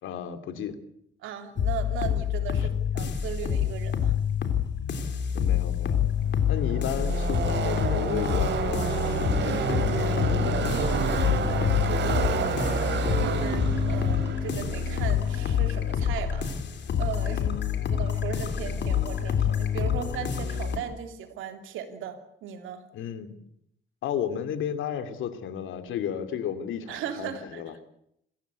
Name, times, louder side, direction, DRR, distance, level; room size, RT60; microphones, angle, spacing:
voice 1, 0.0-0.8 2.6-2.7 5.3-6.1 6.5-11.1 17.2-17.7 22.9-23.3 24.0-27.8, left 8 dB, 85° left, 9 dB, 2.6 m, -34 dB
voice 2, 1.2-4.2 11.4-16.5 17.0-17.5 17.9-22.8 26.9-27.9, right 9 dB, 90° right, 7 dB, 3.0 m, -37 dB
sound 1, 1.6-20.8, left 8 dB, 65° left, 3.5 m, -27 dB
Car passing by / Race car auto racing, 5.8-16.3, right 6 dB, 65° right, 3.7 m, -30 dB
27.0 x 15.0 x 8.3 m, 0.75 s
cardioid pair, 90°, 20 cm